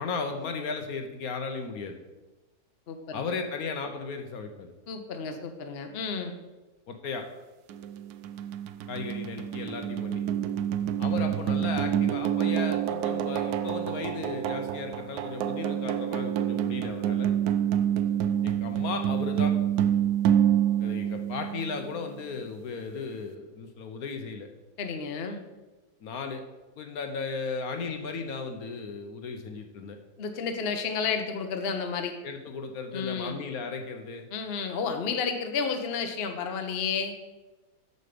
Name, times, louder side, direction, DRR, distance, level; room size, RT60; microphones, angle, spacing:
voice 1, 0.0-2.0 3.1-4.7 6.9-7.2 8.9-10.2 11.0-17.3 18.4-19.5 20.8-24.5 26.0-26.4 26.8-30.0 32.2-34.3, left 4 dB, 65° left, 5 dB, 1.2 m, -35 dB
voice 2, 2.9-3.3 4.9-6.3 24.8-25.4 30.2-32.1 32.9-33.3 34.3-37.1, left 5 dB, 45° left, 6 dB, 0.8 m, -31 dB
sound 1, 7.7-21.9, right 10 dB, 70° right, 1.0 m, -27 dB
8.1 x 6.7 x 5.0 m, 1.1 s
omnidirectional pair, 1.8 m